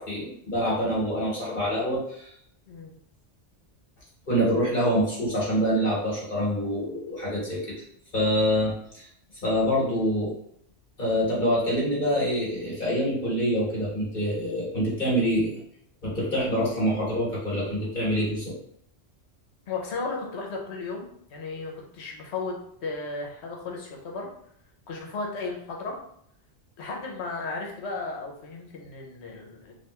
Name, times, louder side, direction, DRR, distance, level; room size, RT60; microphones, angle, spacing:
voice 1, 0.0-2.3 4.3-7.7 8.1-9.1 9.4-10.3 11.0-15.5 16.0-18.5, equal, 45° left, -6 dB, 1.3 m, -26 dB
voice 2, 19.7-21.0 21.3-22.6 22.8-24.3 24.9-25.9 26.8-29.7, left 3 dB, 70° left, 0 dB, 1.1 m, -34 dB
3.3 x 2.7 x 2.9 m, 0.69 s
omnidirectional pair, 1.2 m